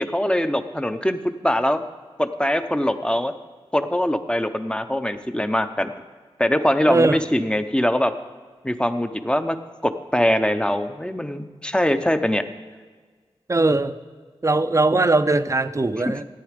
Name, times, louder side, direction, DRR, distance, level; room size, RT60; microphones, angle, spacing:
voice 1, 0.0-1.8 2.2-3.3 3.7-5.9 6.4-8.1 8.6-9.6 9.8-12.5, left 1 dB, 10° left, 9 dB, 0.7 m, -22 dB
voice 2, 6.9-7.2 13.5-13.9 14.4-16.2, right 2 dB, 30° right, 12 dB, 0.6 m, -20 dB
14.5 x 9.5 x 5.2 m, 1.5 s
wide cardioid pair, 70°, 10 cm